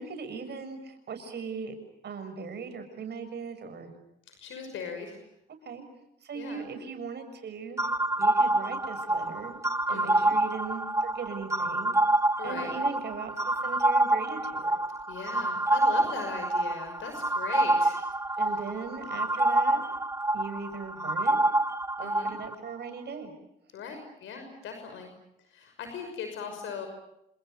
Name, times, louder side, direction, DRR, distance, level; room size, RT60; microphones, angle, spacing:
voice 1, 0.0-1.8 2.0-3.9 5.6-5.9 6.2-7.8 8.2-9.6 9.9-12.0 12.4-14.8 18.4-19.8 20.3-21.4 22.0-23.3, right 5 dB, 60° right, 7 dB, 6.9 m, -39 dB
voice 2, 4.3-5.2 6.3-6.7 9.9-10.3 12.4-12.8 15.1-18.0 22.0-22.3 23.7-25.1 25.5-26.9, left 5 dB, 80° left, 6 dB, 6.0 m, -39 dB
sound 1, 7.8-22.6, right 2 dB, 15° right, 1.0 m, -27 dB
29.0 x 27.0 x 6.8 m, 0.82 s
cardioid pair, 90°, 20 cm